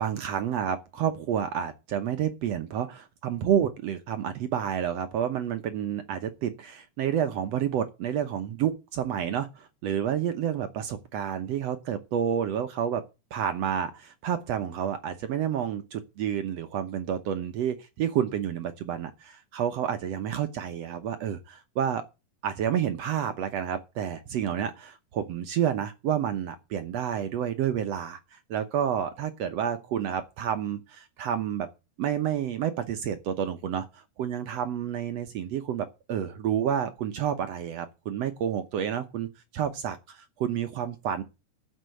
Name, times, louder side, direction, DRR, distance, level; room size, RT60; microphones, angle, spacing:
voice 1, 0.0-13.0 13.3-22.0 22.4-31.7 32.0-39.3 39.5-41.2, right 9 dB, 65° right, 1.7 m, -29 dB
14.0 x 5.6 x 8.2 m
omnidirectional pair, 3.8 m